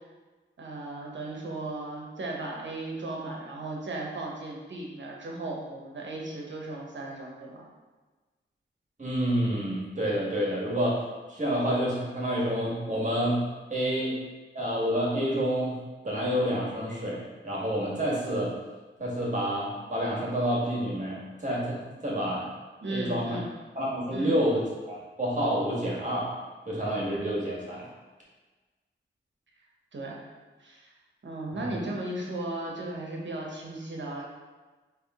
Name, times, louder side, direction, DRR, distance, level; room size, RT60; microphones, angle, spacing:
voice 1, 0.6-7.7 22.8-23.5 24.1-24.4 29.9-30.3 30.6-30.9 31.2-34.2, right 2 dB, 65° right, -1 dB, 0.9 m, -36 dB
voice 2, 9.0-11.0 11.3-13.4 13.7-14.1 14.5-18.5 19.0-22.5 22.9-23.4 23.7-26.3 26.7-27.9 31.5-31.8, equal, 35° right, -5 dB, 1.5 m, -28 dB
3.6 x 3.0 x 3.5 m, 1.3 s
cardioid pair, 60°, 20 cm